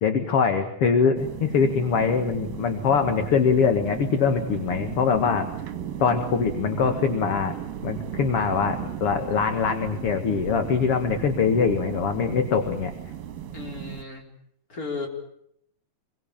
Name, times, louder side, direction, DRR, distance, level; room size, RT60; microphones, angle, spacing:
voice 1, 0.0-5.5 6.0-7.6 7.8-12.9, left 6 dB, 50° left, 7 dB, 2.4 m, -23 dB
sound 1, 1.2-14.0, right 9 dB, 80° right, 3.5 m, -35 dB
voice 2, 13.5-14.2 14.7-15.1, left 4 dB, 25° left, 1 dB, 5.1 m, -34 dB
28.0 x 22.0 x 8.9 m, 0.73 s
omnidirectional pair, 3.9 m